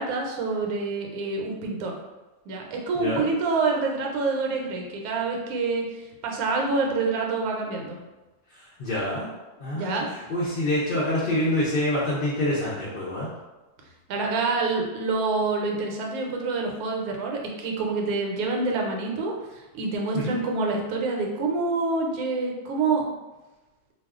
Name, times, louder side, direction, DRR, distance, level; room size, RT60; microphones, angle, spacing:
voice 1, 0.0-1.9 2.5-8.0 9.7-10.1 14.1-23.0, right 3 dB, 75° right, 1 dB, 1.0 m, -27 dB
voice 2, 2.9-3.3 8.8-9.3 9.6-10.0 10.3-13.3 20.1-20.4, left 1 dB, 60° left, -8 dB, 0.5 m, -26 dB
2.4 x 2.3 x 3.5 m, 1.1 s
omnidirectional pair, 1.6 m